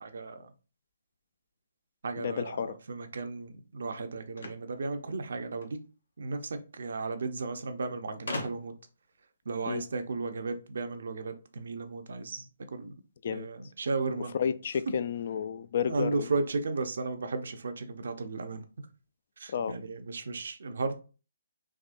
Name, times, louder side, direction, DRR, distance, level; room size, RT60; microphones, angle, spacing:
voice 1, 0.0-0.5 2.0-5.8 6.2-8.7 9.5-12.5 12.7-12.9 13.3-14.3 15.8-18.6 19.4-21.0, right 3 dB, 70° right, 0.6 m, -34 dB
voice 2, 2.2-2.8 9.7-9.8 13.2-13.5 14.4-16.3 19.5-19.8, left 7 dB, 55° left, 0.3 m, -31 dB
sound 1, 4.3-5.8 6.9-7.0 7.2-7.3 8.3-8.9, left 2 dB, 75° left, 0.9 m, -39 dB
3.5 x 2.8 x 2.5 m
hypercardioid pair, 145°, 0 cm